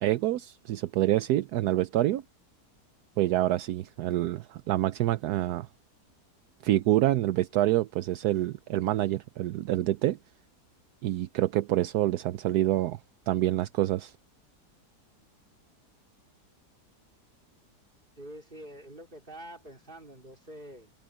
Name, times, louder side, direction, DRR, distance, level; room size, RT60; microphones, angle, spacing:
voice 1, 0.0-2.2 3.2-5.7 6.6-10.2 11.0-13.0 13.3-14.1, right 14 dB, 75° right, 1.1 m, -27 dB
voice 2, 18.2-20.9, right 1 dB, 30° right, 4.0 m, -46 dB
open air
omnidirectional pair, 1.7 m